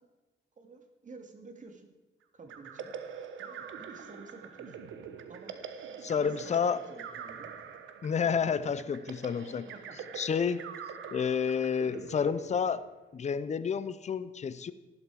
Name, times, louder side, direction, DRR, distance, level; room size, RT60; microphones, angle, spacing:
voice 1, 0.6-1.9 2.3-2.9 3.4-4.8 5.3-5.6 6.2-7.5 9.7-10.0, right 3 dB, 40° right, 5 dB, 2.4 m, -51 dB
sound 1, 2.5-13.1, right 7 dB, 75° right, 1.3 m, -44 dB
voice 2, 6.0-6.8 8.0-9.7 10.2-10.6 11.1-12.8 13.1-14.7, left 6 dB, 35° left, 14 dB, 0.7 m, -30 dB
14.5 x 12.0 x 4.8 m, 1.2 s
cardioid pair, 90°, 20 cm